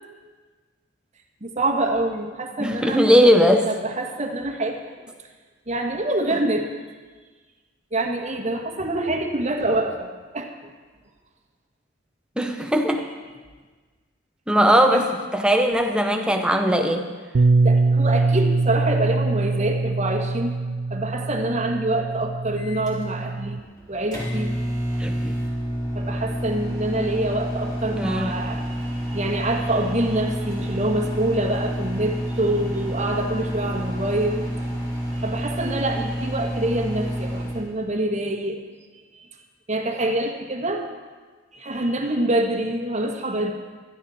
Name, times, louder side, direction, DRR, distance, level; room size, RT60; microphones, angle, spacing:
voice 1, 1.4-3.0 3.7-4.8 5.7-6.7 7.9-10.7 14.9-15.0 17.6-20.6 20.9-23.6 23.9-24.5 25.9-34.5 35.1-38.6 38.9-39.3 39.7-40.9 41.5-43.5, right 1 dB, 35° right, 2 dB, 1.6 m, -26 dB
voice 2, 2.6-3.7 12.4-13.0 14.5-17.0 25.0-25.4 28.0-28.3, equal, 5° right, 4 dB, 1.0 m, -19 dB
Bass guitar, 17.3-23.6, right 3 dB, 60° right, 0.5 m, -23 dB
Microwave oven, 22.6-37.6, equal, 20° left, 3.6 m, -29 dB
16.0 x 12.5 x 4.3 m, 1.4 s
head